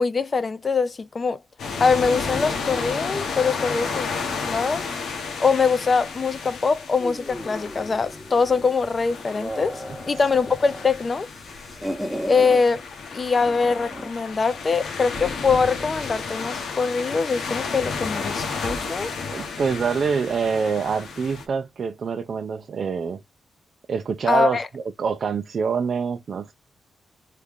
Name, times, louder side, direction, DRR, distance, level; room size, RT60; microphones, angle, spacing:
voice 1, 0.0-1.4 1.8-4.1 4.4-4.9 5.4-11.3 12.3-12.8 13.1-19.1 24.3-24.7, left 5 dB, 40° left, 0.5 m, -23 dB
sound 1, 1.6-21.5, left 4 dB, 80° left, 1.1 m, -32 dB
sound 2, 7.0-8.8 9.2-10.9 11.2-12.6 13.4-14.2, equal, 5° left, 1.1 m, -35 dB
voice 2, 19.3-23.2 23.9-26.5, right 5 dB, 60° right, 0.5 m, -25 dB
3.3 x 2.3 x 3.5 m
cardioid pair, 90°, 0 cm